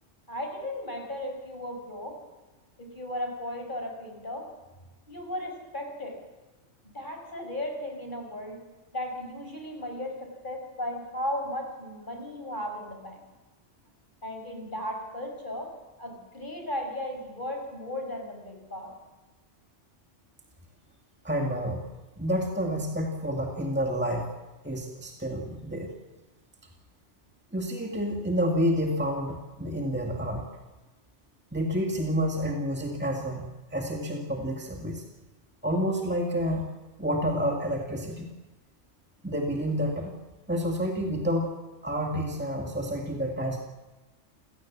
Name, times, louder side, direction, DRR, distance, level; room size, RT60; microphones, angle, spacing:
voice 1, 0.3-2.2 2.8-4.5 5.1-6.2 6.8-8.6 8.9-13.3 14.2-15.7 16.0-18.9, left 1 dB, 40° left, 3 dB, 5.5 m, -36 dB
voice 2, 21.2-21.8 22.2-24.3 24.6-25.9 27.5-30.5 31.5-33.5 33.7-35.0 35.6-36.7 37.0-38.3 39.2-40.1 40.5-41.5 41.8-43.6, equal, 10° right, 0 dB, 2.1 m, -29 dB
28.0 x 17.5 x 7.4 m, 1.2 s
omnidirectional pair, 1.2 m